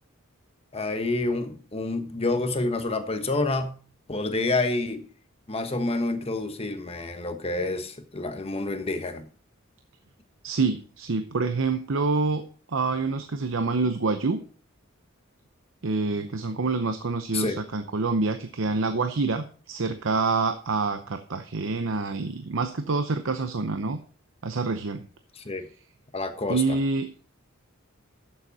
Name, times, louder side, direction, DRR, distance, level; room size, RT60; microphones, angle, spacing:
voice 1, 0.7-3.8 4.1-5.0 5.5-9.3 17.3-17.6 25.4-25.6 26.1-26.8, left 2 dB, 30° left, 1.1 m, -28 dB
voice 2, 10.4-14.4 15.8-24.0 24.4-25.0 26.5-27.1, right 3 dB, 65° right, 0.7 m, -27 dB
11.0 x 7.1 x 4.1 m
head